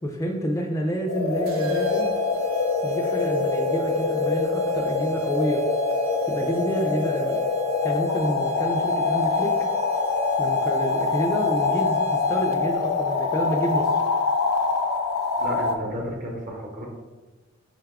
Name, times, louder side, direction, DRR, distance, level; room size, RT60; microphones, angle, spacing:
voice 1, 0.0-2.1 2.8-5.7 6.3-7.4 7.8-9.6 10.4-14.0, equal, 15° left, 2 dB, 0.3 m, -28 dB
sound 1, 1.1-15.8, left 4 dB, 85° left, 0.4 m, -24 dB
sound 2, 1.5-12.8, right 7 dB, 70° right, 0.4 m, -38 dB
voice 2, 15.4-16.9, equal, 45° right, 0 dB, 0.9 m, -32 dB
4.0 x 3.4 x 3.5 m, 1.2 s
head